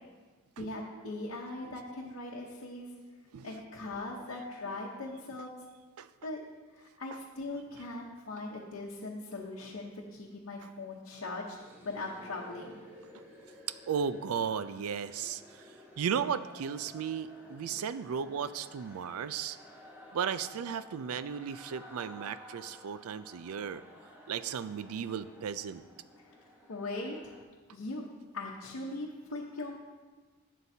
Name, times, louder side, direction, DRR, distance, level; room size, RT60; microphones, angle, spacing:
voice 1, 0.6-3.0 3.4-5.5 6.2-6.4 6.8-11.6 11.8-12.8 26.7-27.3 27.7-28.0 28.3-29.8, left 2 dB, 65° left, -4 dB, 0.9 m, -40 dB
sound 1, 11.6-27.4, left 1 dB, 10° right, 1.2 m, -54 dB
voice 2, 13.9-15.4 16.0-19.6 20.1-23.8 24.3-25.8, right 7 dB, 80° right, 14 dB, 0.4 m, -35 dB
11.5 x 8.2 x 2.7 m, 1.4 s
head